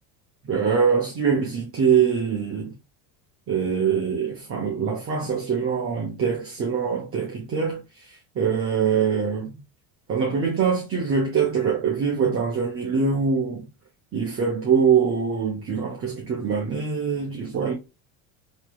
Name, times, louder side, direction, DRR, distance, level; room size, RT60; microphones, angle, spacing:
voice 1, 0.4-2.7 3.5-9.6 10.1-13.7 14.1-17.7, right 6 dB, 30° right, 0.8 m, -23 dB
3.0 x 2.9 x 2.2 m
supercardioid pair, 105°, 49 cm